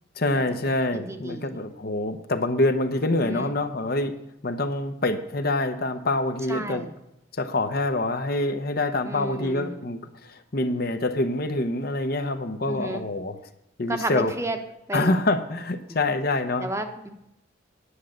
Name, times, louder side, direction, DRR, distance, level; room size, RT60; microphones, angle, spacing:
voice 1, 0.2-4.1 4.4-6.8 7.3-13.4 13.8-14.3 14.9-16.7, left 2 dB, 55° left, 8 dB, 0.9 m, -26 dB
voice 2, 0.9-1.6 3.1-3.5 6.5-6.9 9.0-9.8 12.6-13.1 13.9-14.6 14.9-15.1 16.6-17.1, right 1 dB, 15° right, 6 dB, 1.0 m, -32 dB
10.0 x 6.4 x 8.6 m, 0.85 s
head